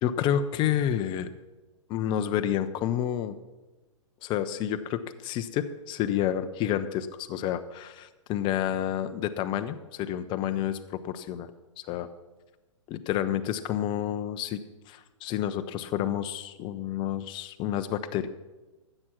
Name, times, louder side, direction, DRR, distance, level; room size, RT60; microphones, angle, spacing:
voice 1, 0.0-1.3 1.9-3.4 4.2-11.5 11.9-12.1 12.9-14.6 14.9-18.3, left 10 dB, 30° left, 11 dB, 0.7 m, -29 dB
12.0 x 7.8 x 5.9 m, 1.2 s
figure-of-eight pair, 110°, 17 cm